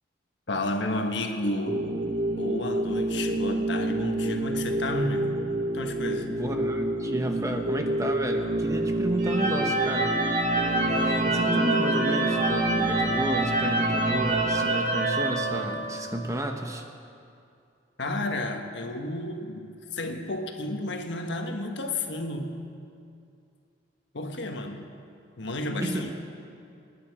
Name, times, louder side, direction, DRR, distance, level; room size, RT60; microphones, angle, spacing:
voice 1, 0.5-2.0 2.3-5.3 5.7-6.3 18.0-22.6 24.1-24.9 25.4-26.1, left 2 dB, 75° left, 4 dB, 1.3 m, -32 dB
sound 1, 1.7-14.7, right 1 dB, 70° right, 1.2 m, -29 dB
voice 2, 6.3-16.8 25.8-26.1, right 1 dB, 15° right, 4 dB, 1.0 m, -32 dB
sound 2, 9.2-16.2, right 2 dB, 40° right, 2.0 m, -27 dB
26.0 x 10.0 x 4.9 m, 2.5 s
head